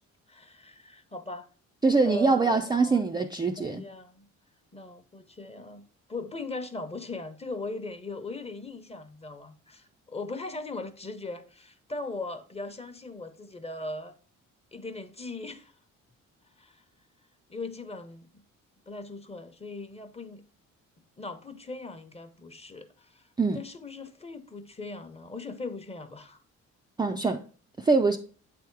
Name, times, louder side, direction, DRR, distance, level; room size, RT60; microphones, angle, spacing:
voice 1, 0.3-1.5 2.0-3.0 3.6-4.3 4.7-5.8 6.1-14.1 14.7-15.7 16.6-16.8 17.5-18.4 18.9-20.4 21.2-26.4, left 3 dB, 20° left, 0.8 m, -39 dB
voice 2, 1.8-3.8 23.4-23.6 27.0-27.4 27.8-28.2, right 3 dB, 15° right, 0.4 m, -23 dB
8.2 x 3.5 x 4.5 m
cardioid pair, 90°, 30 cm